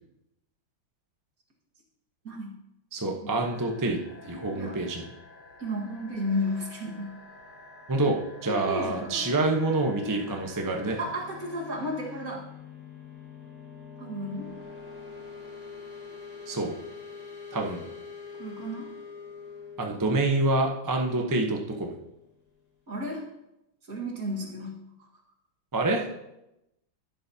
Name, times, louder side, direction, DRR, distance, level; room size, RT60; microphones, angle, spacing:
voice 1, 2.9-4.0 4.2-5.0 7.9-11.0 16.5-16.7 17.5-17.8 19.8-22.0 25.7-26.1, right 2 dB, 20° right, 1 dB, 0.5 m, -27 dB
sound 1, 3.4-12.2, left 1 dB, 75° left, 3.9 m, -49 dB
voice 2, 5.6-7.2 8.5-9.3 11.0-12.4 14.0-14.5 18.4-18.9 22.9-23.2 23.9-24.8, left 1 dB, 45° right, -1 dB, 2.1 m, -33 dB
guitar feedback, 10.3-22.6, left 6 dB, 45° left, 2.7 m, -45 dB
12.0 x 11.0 x 2.8 m, 0.87 s
omnidirectional pair, 2.2 m